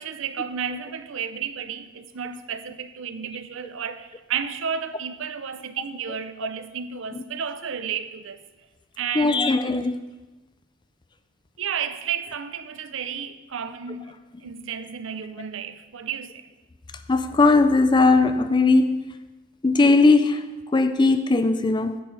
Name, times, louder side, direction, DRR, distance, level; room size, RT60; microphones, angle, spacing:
voice 1, 0.0-8.4 9.0-9.5 11.6-14.1 14.4-16.4, right 7 dB, 65° right, 0.5 m, -32 dB
voice 2, 9.1-10.0 15.4-15.5 17.1-19.2 19.6-22.0, left 3 dB, 20° left, 0.3 m, -19 dB
10.0 x 8.7 x 4.0 m
head